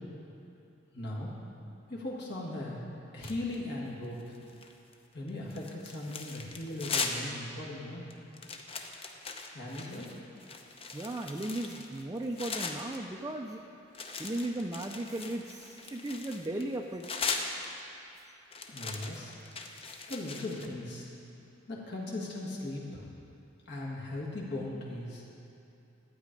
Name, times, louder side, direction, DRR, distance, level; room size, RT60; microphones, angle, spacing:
voice 1, 0.9-1.3 1.9-2.8 3.1-4.2 5.1-8.1 9.5-10.1 18.7-19.3 20.1-21.1 21.7-23.0 23.7-25.2, left 1 dB, 60° left, -4 dB, 1.6 m, -38 dB
sound 1, 3.2-3.7 4.2-4.9 5.3-7.3 7.7-7.8 8.1-13.0 13.9-18.0 18.5-20.7, left 4 dB, 30° left, 0.7 m, -39 dB
voice 2, 10.9-13.6 14.0-17.1, right 1 dB, 20° right, 2 dB, 0.4 m, -36 dB
11.5 x 8.5 x 5.2 m, 2.7 s
head